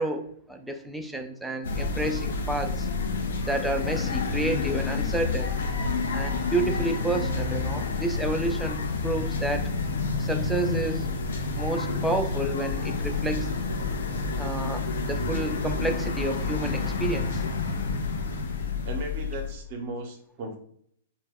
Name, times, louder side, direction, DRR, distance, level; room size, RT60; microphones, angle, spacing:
voice 1, 0.0-2.9 3.5-5.5 6.1-9.7 10.2-11.1 11.6-13.5 14.4-17.4, right 2 dB, 5° right, 4 dB, 0.3 m, -30 dB
sound 1, 1.6-19.5, left 4 dB, 70° left, 0.5 m, -29 dB
voice 2, 18.8-20.6, right 2 dB, 45° right, 3 dB, 0.6 m, -36 dB
2.1 x 2.1 x 3.4 m, 0.67 s
hypercardioid pair, 110°, 0 cm